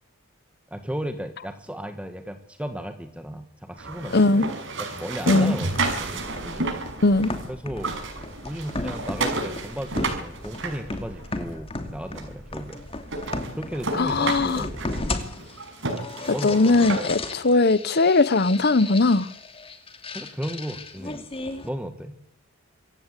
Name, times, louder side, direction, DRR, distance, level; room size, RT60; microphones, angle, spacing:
voice 1, 0.7-4.5 4.8-6.7 7.5-8.0 8.4-12.8 13.5-14.8 16.3-16.9 20.1-21.2 21.6-22.2, equal, 5° right, 1.5 m, -35 dB
sound 1, 3.8-7.5 7.7-11.5 12.2-12.3 12.7-12.8 13.1-17.3, right 2 dB, 60° right, 6.2 m, -31 dB
voice 2, 4.1-4.5 5.3-5.6 7.0-7.3 14.0-14.7 16.4-19.3, left 3 dB, 50° left, 0.9 m, -19 dB
sound 2, 5.7-21.7, left 2 dB, 25° left, 2.5 m, -35 dB
26.0 x 15.5 x 8.3 m
head